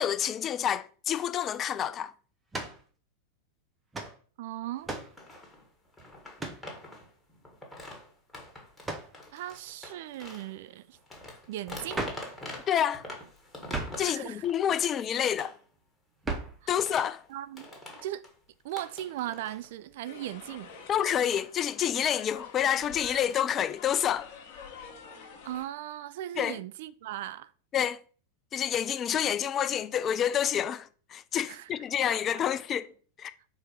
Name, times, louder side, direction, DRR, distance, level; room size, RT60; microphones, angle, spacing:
voice 1, 0.0-2.1 12.7-13.1 14.0-15.5 16.7-17.2 20.9-24.3 26.4-26.6 27.7-28.0 28.5-32.9 33.2-33.3, left 9 dB, 30° left, 0.4 m, -28 dB
sound 1, 2.5-2.8 3.9-4.2 4.8-5.2 6.4-6.7 8.8-9.1 11.9-12.3 13.7-14.1 16.2-16.6, right 2 dB, 15° right, 1.0 m, -35 dB
voice 2, 4.4-5.0 9.3-11.0 11.5-12.1 14.0-14.4 14.8-14.9 17.3-17.8 18.0-18.2 18.6-20.7 25.4-27.5 31.5-31.7 32.1-32.4, right 13 dB, 55° right, 0.3 m, -38 dB
sound 2, 4.8-4.9 5.2-10.5 10.9-14.7 15.4-15.6 16.6-17.3 17.5-18.4 18.7-19.9 20.2-20.7 21.0-22.0 22.7-23.7, left 1 dB, 10° left, 1.6 m, -46 dB
sound 3, 20.0-25.7, left 6 dB, 45° left, 1.3 m, -48 dB
4.5 x 4.4 x 5.0 m
figure-of-eight pair, 90°, 0 cm